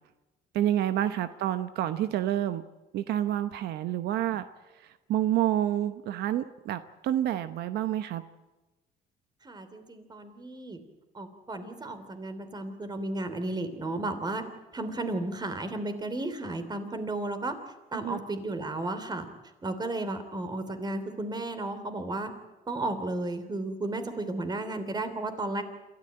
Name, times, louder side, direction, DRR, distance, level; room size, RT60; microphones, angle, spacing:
voice 1, 0.5-2.6 2.9-4.4 4.7-8.2 17.9-18.2, right 12 dB, 75° right, 11 dB, 0.9 m, -28 dB
voice 2, 9.4-10.8 11.1-14.4 14.7-17.6 17.9-19.3 19.6-22.3 22.7-25.6, right 2 dB, 25° right, 9 dB, 3.1 m, -33 dB
27.5 x 13.5 x 8.8 m, 1.1 s
cardioid pair, 110°, 17 cm